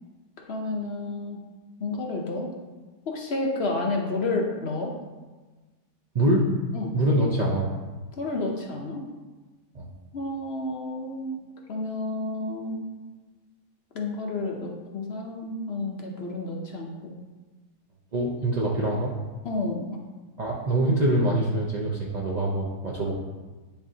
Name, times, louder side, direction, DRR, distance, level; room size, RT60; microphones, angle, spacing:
voice 1, 0.5-1.4 1.8-2.5 3.1-4.9 6.7-6.9 8.2-9.0 10.1-11.4 11.7-12.8 13.9-17.2 19.4-20.0, left 2 dB, 55° left, 0 dB, 0.7 m, -30 dB
voice 2, 6.9-7.7 9.7-9.9 18.1-19.1 20.4-23.1, right 1 dB, 85° right, -4 dB, 0.3 m, -24 dB
10.0 x 3.5 x 2.7 m, 1.3 s
omnidirectional pair, 1.7 m